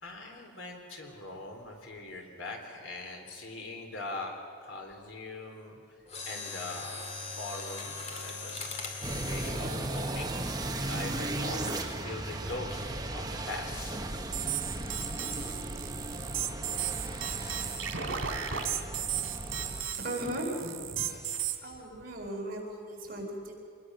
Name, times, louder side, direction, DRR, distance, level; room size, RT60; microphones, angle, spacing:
voice 1, 0.0-4.3 4.6-5.8 6.2-8.8 9.3-10.3 10.9-14.0, left 2 dB, 80° left, 2 dB, 3.8 m, -42 dB
Mechanisms, 6.1-11.0 11.6-11.9 12.5-12.8 13.2-13.3, left 4 dB, 35° left, 2.4 m, -41 dB
sound 1, 9.0-19.8, right 1 dB, 20° right, 1.3 m, -36 dB
sound 2, 14.3-21.6, right 9 dB, 80° right, 2.7 m, -35 dB
voice 2, 20.0-21.3 21.6-23.5, right 1 dB, 50° right, -1 dB, 5.0 m, -37 dB
27.5 x 20.5 x 6.4 m, 2.3 s
head